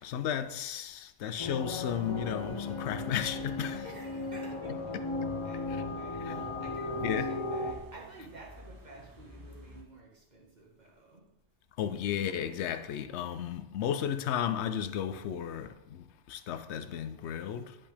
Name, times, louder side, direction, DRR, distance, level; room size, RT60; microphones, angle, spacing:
voice 1, 0.0-3.8 4.9-5.0 5.7-5.8 6.3-6.4 7.0-7.3 11.8-17.8, left 9 dB, 70° left, 0.9 m, -34 dB
sound 1, 1.4-7.7, left 2 dB, 30° left, 0.6 m, -36 dB
sound 2, 1.7-9.8, equal, 20° right, 1.0 m, -54 dB
voice 2, 3.8-11.2, right 2 dB, 35° right, 1.7 m, -51 dB
10.5 x 5.4 x 3.4 m
omnidirectional pair, 1.2 m